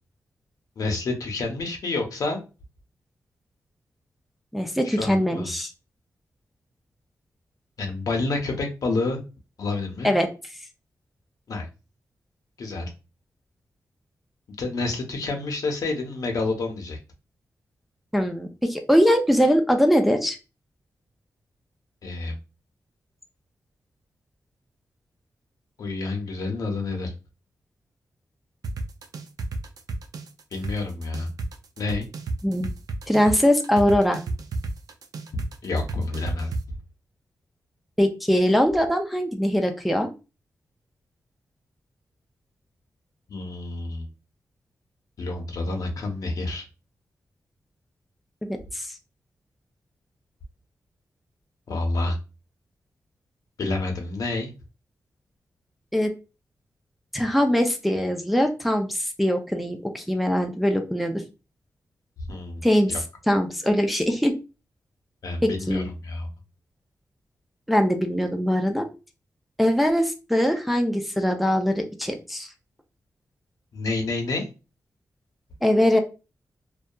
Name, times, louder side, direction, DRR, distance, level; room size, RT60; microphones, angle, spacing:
voice 1, 0.8-2.4 4.8-5.5 7.8-9.2 9.6-10.1 11.5-11.7 12.6-12.9 14.6-17.0 22.0-22.4 25.8-27.1 30.5-31.3 31.8-32.1 35.6-36.5 43.3-44.1 45.2-46.6 51.7-52.2 53.6-54.5 62.3-63.0 65.2-66.3 73.7-74.4, left 3 dB, 70° left, 3 dB, 0.7 m, -28 dB
voice 2, 4.5-5.7 10.0-10.3 18.1-20.4 32.4-32.7 33.1-34.2 38.0-40.1 48.5-48.9 55.9-56.1 57.1-61.2 62.6-62.9 63.3-64.3 65.4-65.9 67.7-68.9 69.6-72.5 75.6-76.0, equal, ahead, 4 dB, 0.4 m, -22 dB
sound 1, 28.6-36.6, right 2 dB, 75° right, 0.4 m, -31 dB
2.7 x 2.3 x 2.2 m, 0.30 s
wide cardioid pair, 115°, 6 cm